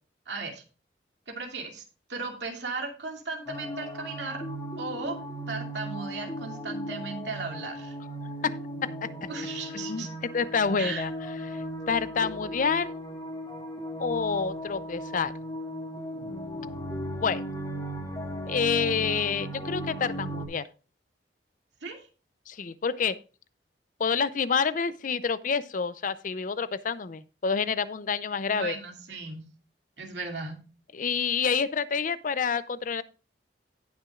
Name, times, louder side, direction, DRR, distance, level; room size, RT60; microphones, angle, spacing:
voice 1, 0.3-0.6 1.3-1.8 2.1-4.4 4.8-5.2 5.5-7.9 9.3-10.1 10.8-11.1 21.8-22.0 28.5-29.4 30.0-30.6, right 4 dB, 75° right, 2 dB, 2.5 m, -36 dB
sound 1, 3.5-20.5, equal, 20° left, 2.1 m, -36 dB
voice 2, 9.7-10.1 10.3-11.1 11.5-12.9 14.0-15.3 17.2-17.4 18.5-20.7 22.5-23.2 24.0-28.7 30.9-33.0, left 5 dB, 50° left, 15 dB, 0.5 m, -28 dB
17.5 x 6.1 x 2.4 m, 0.34 s
head